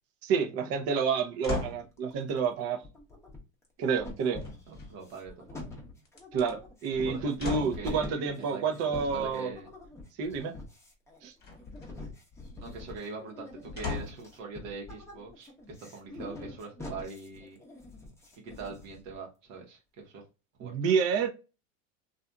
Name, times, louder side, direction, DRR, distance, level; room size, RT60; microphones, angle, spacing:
voice 1, 0.2-2.8 3.8-4.4 6.3-9.5 10.2-10.5 11.2-11.3 20.6-21.3, right 6 dB, 40° right, 0.6 m, -29 dB
sound 1, 1.4-1.9 4.4-5.1 6.0-6.5 7.4-7.9 11.4-11.9 13.8-14.3 15.0-15.1, left 4 dB, 25° left, 1.2 m, -36 dB
sound 2, 2.0-2.5 2.8-3.7 4.0-19.1, left 2 dB, 5° left, 0.7 m, -45 dB
voice 2, 4.7-5.6 6.9-9.7 12.6-17.6 18.4-20.2 20.6-20.7, right 3 dB, 70° right, 1.0 m, -42 dB
2.6 x 2.5 x 2.2 m
supercardioid pair, 120°, 41 cm